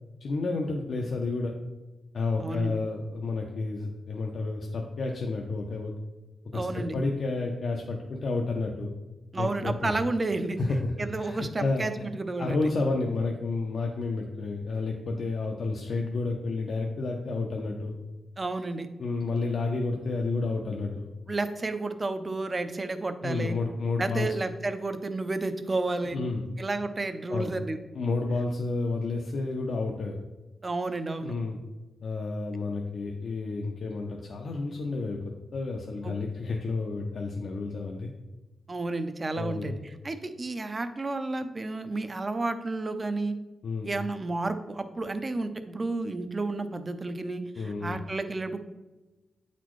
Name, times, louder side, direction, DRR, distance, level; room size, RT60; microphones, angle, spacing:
voice 1, 0.2-1.5 2.1-5.9 6.5-8.9 9.4-9.9 10.6-10.9 11.2-11.9 12.4-17.9 19.0-21.1 23.2-24.3 26.0-26.4 27.3-27.5 27.9-30.2 31.2-31.6 32.0-35.2 35.5-38.1 39.4-39.8 43.6-43.9 47.5-48.0, left 3 dB, 55° left, 1 dB, 0.6 m, -30 dB
voice 2, 2.4-2.8 6.5-6.9 9.3-10.6 11.0-12.6 18.4-18.9 21.3-23.6 24.0-26.2 26.6-27.8 30.6-31.3 36.0-36.1 38.7-43.4 43.8-48.6, right 2 dB, 25° right, 9 dB, 0.4 m, -31 dB
8.9 x 4.1 x 3.1 m, 1.1 s
wide cardioid pair, 155°, 0 cm